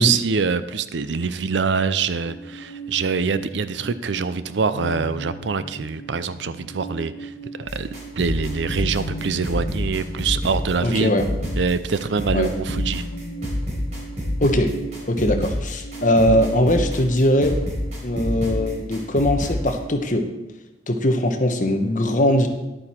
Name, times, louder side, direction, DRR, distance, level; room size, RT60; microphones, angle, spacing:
voice 1, 0.0-7.9 8.1-11.1 11.6-13.0, right 5 dB, 80° right, 14 dB, 0.5 m, -24 dB
sound 1, 2.2-20.0, right 2 dB, 80° left, 1.5 m, -38 dB
sound 2, 7.6-19.7, left 1 dB, 40° right, 4.0 m, -28 dB
voice 2, 10.8-11.3 12.3-12.5 14.4-14.7 15.1-17.7 18.0-20.2 20.9-22.5, left 1 dB, 45° left, 5 dB, 1.0 m, -20 dB
11.0 x 8.7 x 4.4 m, 1.0 s
head